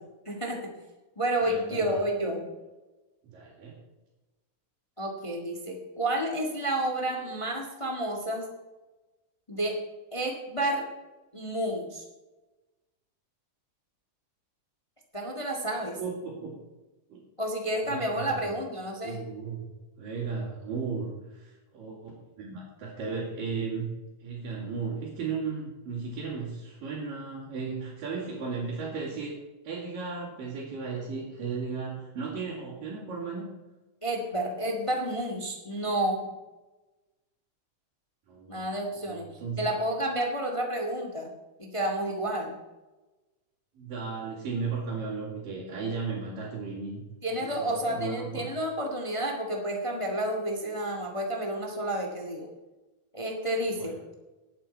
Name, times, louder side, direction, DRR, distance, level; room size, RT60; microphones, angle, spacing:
voice 1, 0.2-0.7 1.2-2.5 5.0-8.4 9.5-9.8 10.1-10.8 11.3-12.0 15.1-16.0 17.4-19.2 34.0-36.2 38.5-39.2 39.6-41.3 41.6-42.5 47.2-52.5 53.1-54.0, right 1 dB, 15° left, 1 dB, 1.0 m, -30 dB
voice 2, 1.4-2.0 3.2-3.8 15.8-16.5 17.1-17.2 17.9-18.6 19.0-19.7 20.0-22.1 22.4-23.9 24.2-29.3 29.6-33.5 38.3-38.7 39.1-39.6 43.8-47.0 47.4-48.5 53.8-53.9, right 5 dB, 85° right, -6 dB, 4.5 m, -35 dB
19.0 x 8.5 x 4.4 m, 1.1 s
omnidirectional pair, 3.8 m